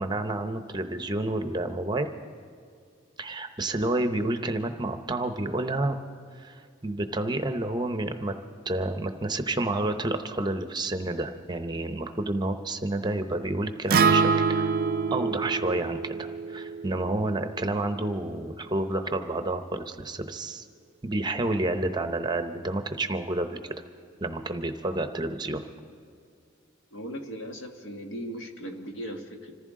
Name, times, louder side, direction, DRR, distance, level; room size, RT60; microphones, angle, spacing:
voice 1, 0.0-2.1 3.2-6.0 6.3-8.3 8.7-14.7 15.1-20.6 21.0-23.7 24.2-25.6, right 2 dB, 20° right, 8 dB, 0.7 m, -29 dB
Acoustic guitar, 13.9-18.1, right 5 dB, 45° right, 0.4 m, -26 dB
voice 2, 26.9-29.5, equal, 70° left, 3 dB, 1.6 m, -38 dB
26.0 x 15.0 x 3.7 m, 2.3 s
head